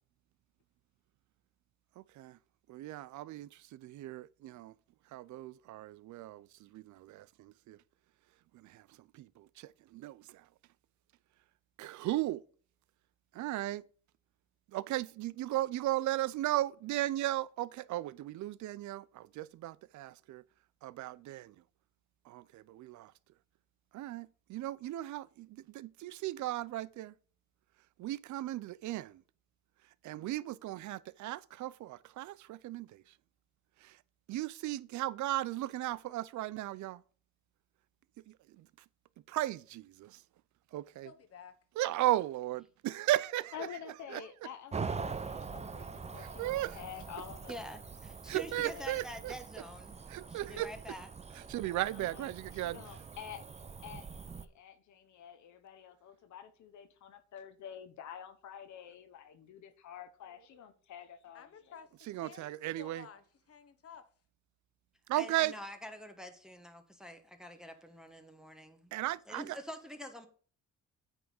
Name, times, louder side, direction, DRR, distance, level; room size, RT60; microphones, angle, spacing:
voice 1, 2.0-2.4 2.7-4.7 5.1-7.8 8.5-8.9 9.1-10.4 11.8-12.4 13.3-13.8 14.7-20.4 20.8-21.5 22.3-23.1 23.9-27.1 28.0-29.2 30.0-33.0 33.8-34.0 34.3-37.0 38.3-38.7 39.3-40.2 40.7-41.1 41.8-43.5 44.1-44.2 46.2-46.8 48.3-49.3 50.1-50.7 51.5-52.8 62.1-63.1 65.1-65.5 68.9-69.6, right 15 dB, 75° right, 0.5 m, -36 dB
voice 2, 41.0-41.6 61.3-64.1, left 7 dB, 50° left, 1.2 m, -53 dB
voice 3, 43.5-47.6 48.5-49.0 51.9-53.4 53.8-61.7, left 9 dB, 70° left, 0.9 m, -49 dB
Cricket / Motor vehicle (road), 44.7-54.4, right 5 dB, 20° right, 0.6 m, -44 dB
voice 4, 47.5-50.0 50.3-51.1 65.2-68.9 69.3-70.3, equal, ahead, 1.2 m, -46 dB
8.9 x 3.6 x 6.3 m
cardioid pair, 90°, 30 cm